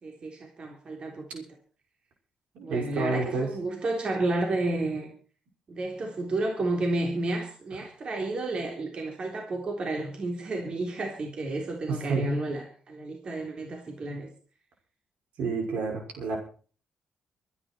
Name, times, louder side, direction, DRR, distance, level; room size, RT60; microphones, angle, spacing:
voice 1, 0.0-1.5 2.6-5.1 5.7-14.3, right 2 dB, 45° right, 1 dB, 3.8 m, -31 dB
voice 2, 2.5-3.5 11.9-12.3 15.4-16.4, right 3 dB, 75° right, 1 dB, 6.1 m, -29 dB
24.0 x 10.0 x 4.6 m, 0.42 s
cardioid pair, 90°, 2 cm